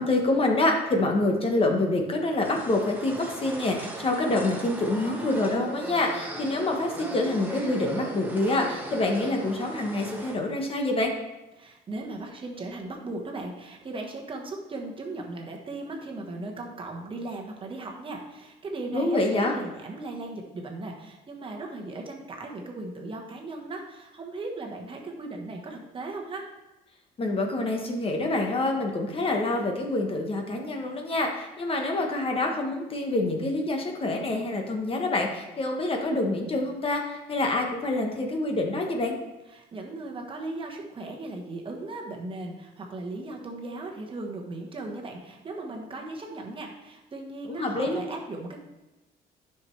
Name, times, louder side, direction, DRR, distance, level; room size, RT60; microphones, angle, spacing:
voice 1, 0.0-11.1 18.9-19.5 27.2-39.2 47.5-48.1, left 2 dB, 35° left, 2 dB, 1.1 m, -26 dB
sound 1, 2.4-10.4, right 2 dB, 10° right, 1.2 m, -38 dB
voice 2, 11.6-26.5 39.5-48.6, right 2 dB, 30° right, 1 dB, 1.3 m, -37 dB
9.6 x 5.8 x 3.3 m, 1.0 s
cardioid pair, 110°, 17 cm